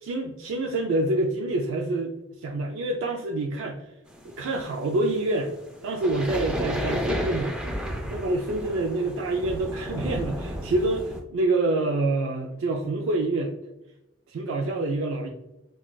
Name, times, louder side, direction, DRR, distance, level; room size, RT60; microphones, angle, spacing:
voice 1, 0.0-2.1 2.4-3.9 4.2-5.6 5.8-7.5 8.1-13.5 14.3-15.3, right 2 dB, 85° right, 1 dB, 0.3 m, -27 dB
sound 1, 4.1-11.2, equal, 5° right, 0.4 m, -32 dB
3.7 x 2.3 x 2.2 m, 0.91 s
head